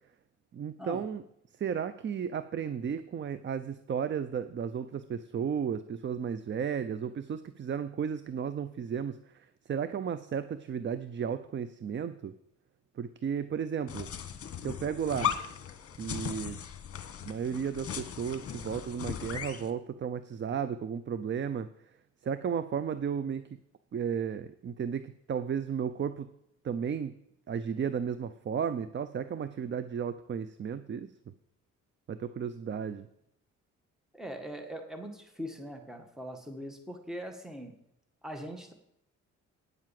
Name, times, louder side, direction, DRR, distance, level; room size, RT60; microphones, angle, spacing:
voice 1, 0.5-1.2 1.6-12.3 13.0-14.1 14.6-15.3 16.0-16.6 17.2-21.7 22.2-23.4 23.9-26.3 26.6-27.2 27.5-31.1 32.1-33.1, right 7 dB, 40° right, 13 dB, 0.6 m, -34 dB
sound 1, 13.9-19.7, left 9 dB, 50° left, 1.3 m, -37 dB
voice 2, 34.1-37.7 38.2-38.7, equal, ahead, 5 dB, 1.7 m, -41 dB
9.6 x 7.5 x 7.6 m, 0.78 s
cardioid pair, 90°, 30 cm